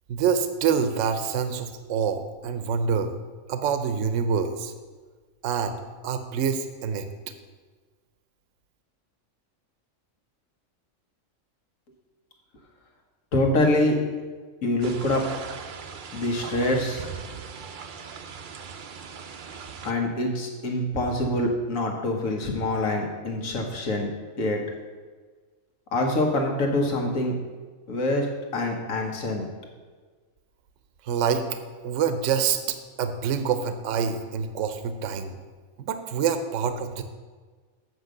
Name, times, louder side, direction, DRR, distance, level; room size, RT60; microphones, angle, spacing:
voice 1, 0.1-3.1 3.5-4.7 5.4-5.8 6.0-7.1 31.0-31.6 31.8-35.4 35.8-37.0, right 7 dB, 70° right, 8 dB, 1.0 m, -26 dB
voice 2, 13.3-14.0 14.6-15.2 16.1-17.1 19.8-24.1 24.4-24.6 25.9-27.3 27.9-28.3 28.5-29.5, left 1 dB, 80° left, 1 dB, 1.6 m, -25 dB
sound 1, 14.8-19.9, right 6 dB, 55° right, 0.6 m, -39 dB
7.9 x 5.5 x 6.4 m, 1.4 s
omnidirectional pair, 1.4 m